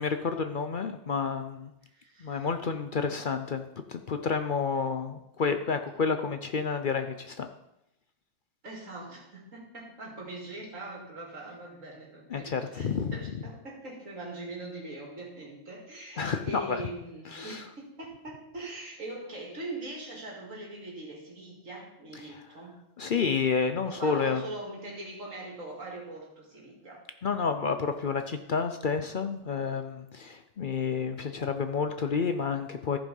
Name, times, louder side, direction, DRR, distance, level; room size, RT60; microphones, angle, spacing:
voice 1, 0.0-1.7 2.2-3.6 3.9-7.5 12.3-13.2 16.2-16.8 17.3-17.6 22.2-22.4 23.0-24.4 27.2-33.0, left 5 dB, 50° left, 7 dB, 0.7 m, -30 dB
voice 2, 1.9-2.5 8.6-22.7 23.8-27.0, right 2 dB, 85° right, -2 dB, 2.9 m, -41 dB
14.5 x 5.4 x 5.4 m, 0.85 s
omnidirectional pair, 1.3 m